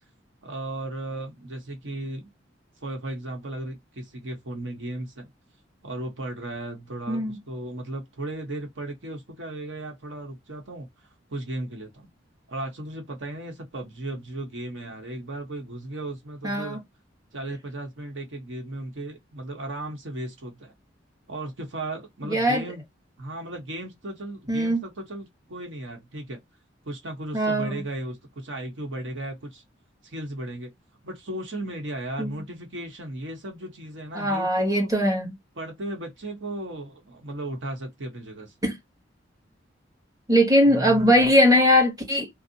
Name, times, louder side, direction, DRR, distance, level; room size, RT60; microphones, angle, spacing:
voice 1, 0.4-2.3 2.8-5.3 5.8-10.9 11.3-12.1 12.5-16.8 17.3-20.7 21.3-22.8 23.2-26.4 26.8-29.6 30.0-30.7 31.0-34.9 35.6-38.5 40.7-41.2, right 1 dB, 80° right, 1.0 m, -35 dB
voice 2, 16.4-16.8 22.2-22.6 24.5-24.8 27.3-27.7 32.2-32.4 34.1-35.3 38.6-38.8 40.3-42.3, equal, 20° right, 1.1 m, -20 dB
2.6 x 2.1 x 2.6 m
head